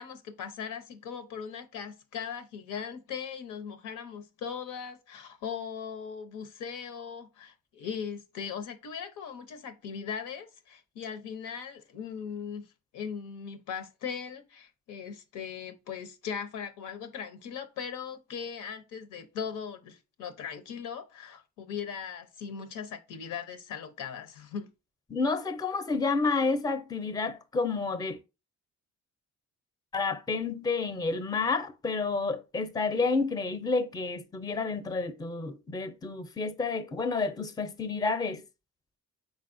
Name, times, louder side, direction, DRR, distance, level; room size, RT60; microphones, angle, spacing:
voice 1, 0.0-12.7 12.9-24.7, left 7 dB, 85° left, 0.8 m, -39 dB
voice 2, 25.1-28.2 29.9-38.4, left 4 dB, 15° left, 0.5 m, -30 dB
4.8 x 4.1 x 2.6 m
cardioid pair, 90°, 30 cm